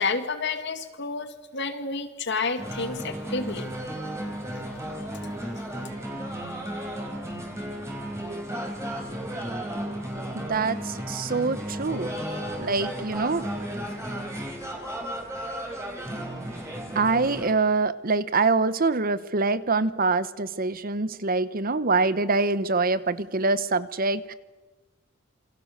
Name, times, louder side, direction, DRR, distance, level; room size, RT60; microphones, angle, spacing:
voice 1, 0.0-3.7, left 4 dB, 60° left, 8 dB, 2.3 m, -30 dB
sound 1, 2.6-17.5, right 1 dB, 15° right, 4.8 m, -34 dB
voice 2, 10.3-12.1 12.6-13.4 16.9-24.3, right 3 dB, 45° right, 15 dB, 1.0 m, -25 dB
28.0 x 24.5 x 6.7 m, 1.2 s
head